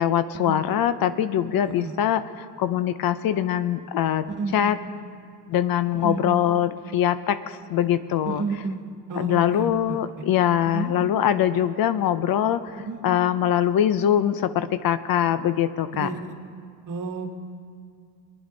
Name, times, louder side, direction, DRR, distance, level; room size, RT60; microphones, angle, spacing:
voice 1, 0.0-4.2 4.5-4.8 5.5-8.4 9.2-12.7 13.0-16.1, left 10 dB, 60° left, 13 dB, 0.6 m, -23 dB
voice 2, 1.6-1.9 4.3-4.8 5.9-6.4 8.3-8.8 9.1-10.0 10.6-10.9 12.7-13.0 15.9-16.3 16.9-17.4, right 4 dB, 50° right, 5 dB, 1.5 m, -31 dB
20.5 x 10.0 x 3.9 m, 2.3 s
cardioid pair, 100°, 41 cm